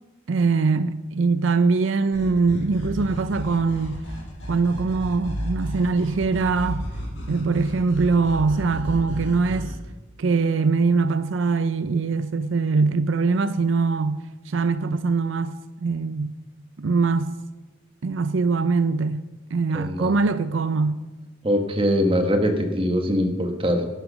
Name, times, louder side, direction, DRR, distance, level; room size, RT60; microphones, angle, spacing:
voice 1, 0.3-4.0 4.5-6.8 7.3-9.8 10.2-15.5 15.8-16.3 16.8-17.3 18.0-19.2 19.5-21.0, right 4 dB, 80° right, 0.5 m, -22 dB
sound 1, 2.1-9.7, equal, 80° left, 5.4 m, -33 dB
voice 2, 19.7-20.1 21.4-23.9, equal, 25° right, 1.4 m, -22 dB
11.0 x 10.0 x 6.2 m
head